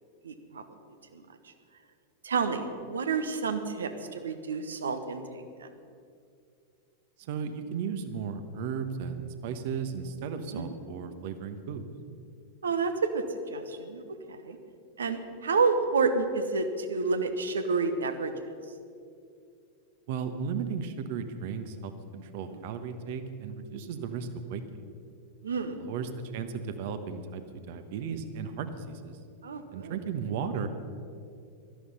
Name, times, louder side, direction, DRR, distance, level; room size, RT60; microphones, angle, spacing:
voice 1, 0.2-0.6 1.1-1.2 2.2-5.7 10.5-10.6 12.6-13.2 13.5-14.2 14.4-14.6 15.0-18.3 22.4-22.6 25.4-25.8 29.4-30.0, right 4 dB, 70° right, 8 dB, 1.2 m, -29 dB
voice 2, 7.2-11.8 20.1-24.8 25.8-29.2 29.7-30.7, right 6 dB, 50° right, 9 dB, 1.2 m, -35 dB
16.5 x 13.0 x 5.5 m, 2.5 s
figure-of-eight pair, 90°, 0 cm